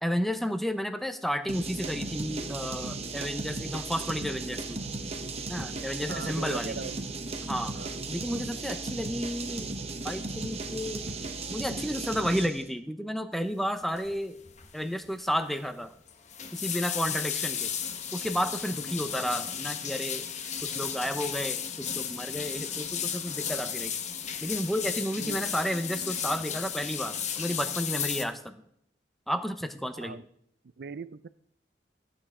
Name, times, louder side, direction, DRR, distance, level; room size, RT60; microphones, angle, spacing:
voice 1, 0.0-4.8 5.5-6.7 7.5-7.7 8.1-9.7 10.0-11.0 11.5-14.4 14.7-15.9 16.5-17.8 18.1-20.3 20.6-23.9 24.4-28.6 29.3-30.2, equal, ahead, 9 dB, 0.7 m, -32 dB
sound 1, 1.5-12.6, right 3 dB, 35° right, 1.0 m, -36 dB
voice 2, 6.1-7.1 7.7-8.0 17.1-17.3 18.7-18.8 24.9-25.4 30.0-30.3 30.8-31.3, right 5 dB, 65° right, 15 dB, 0.5 m, -40 dB
sound 2, 14.0-14.2 14.4-14.8 15.0-15.1 16.1-28.2, left 8 dB, 45° left, 0.9 m, -34 dB
14.0 x 8.7 x 3.7 m, 0.72 s
head